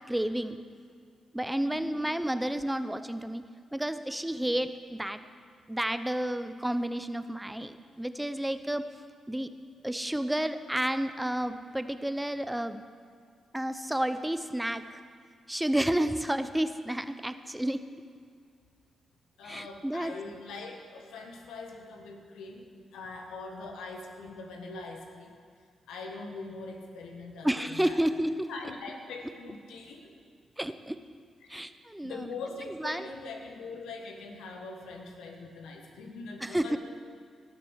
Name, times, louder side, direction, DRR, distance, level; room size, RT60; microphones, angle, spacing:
voice 1, 0.1-0.6 1.3-3.4 3.7-5.2 5.7-8.8 9.3-9.5 9.8-12.8 13.5-15.0 15.5-17.8 19.4-20.1 27.4-28.5 30.6-31.0 31.5-32.3 32.8-33.1 36.4-36.8, right 1 dB, 10° right, 11 dB, 0.7 m, -31 dB
voice 2, 1.6-2.0 4.4-4.5 19.4-25.3 25.9-28.0 28.5-30.1 31.5-31.6 32.0-36.8, left 3 dB, 80° left, 3 dB, 1.5 m, -42 dB
18.0 x 6.8 x 6.4 m, 2.1 s
supercardioid pair, 45°, 0 cm